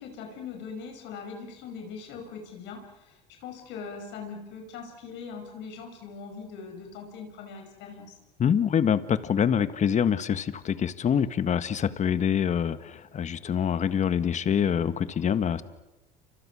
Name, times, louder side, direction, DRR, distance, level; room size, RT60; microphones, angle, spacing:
voice 1, 0.0-8.2, left 5 dB, 60° left, 3 dB, 5.8 m, -41 dB
voice 2, 8.4-15.6, left 8 dB, 35° left, 13 dB, 1.6 m, -25 dB
29.5 x 26.5 x 6.3 m, 0.98 s
supercardioid pair, 95°, 21 cm